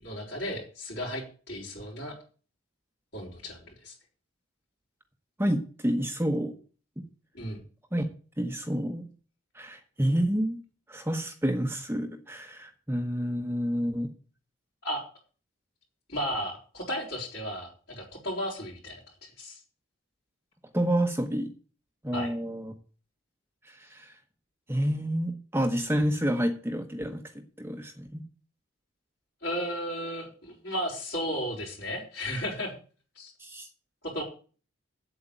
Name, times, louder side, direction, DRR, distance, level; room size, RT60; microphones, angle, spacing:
voice 1, 0.0-2.2 3.1-3.9 7.3-7.6 14.8-15.0 16.1-19.6 22.1-22.3 29.4-32.7 33.1-33.3 34.0-34.2, equal, 50° left, -7 dB, 5.1 m, -34 dB
voice 2, 5.4-6.5 7.9-8.0 8.4-9.1 9.5-10.6 10.9-14.1 20.7-21.5 22.0-22.7 23.6-24.1 24.7-28.2 33.4-33.7, equal, 10° right, 4 dB, 1.1 m, -29 dB
8.6 x 8.1 x 8.9 m, 0.39 s
head